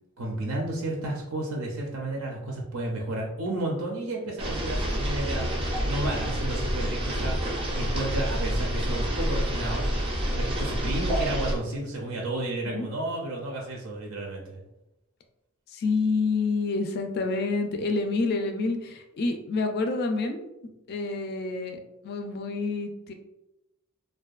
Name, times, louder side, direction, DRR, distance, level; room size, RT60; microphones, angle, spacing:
voice 1, 0.2-5.5 5.9-7.4 7.7-9.9 10.3-14.6, right 2 dB, 80° right, -1 dB, 0.5 m, -32 dB
sound 1, 4.4-11.5, equal, 25° right, 0.4 m, -28 dB
voice 2, 15.7-20.5 20.9-23.1, left 3 dB, 50° left, 5 dB, 0.3 m, -28 dB
2.5 x 2.2 x 2.3 m, 0.90 s
head